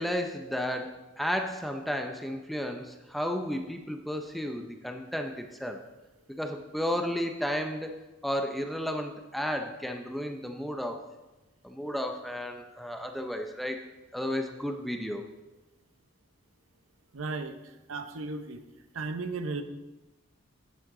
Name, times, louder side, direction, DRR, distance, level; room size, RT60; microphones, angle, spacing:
voice 1, 0.0-5.8 6.4-11.0 11.6-13.9 14.1-15.2, equal, ahead, 5 dB, 0.5 m, -33 dB
voice 2, 17.1-18.6 18.9-19.6, right 3 dB, 85° right, 9 dB, 0.8 m, -35 dB
9.3 x 8.4 x 3.7 m, 1.1 s
head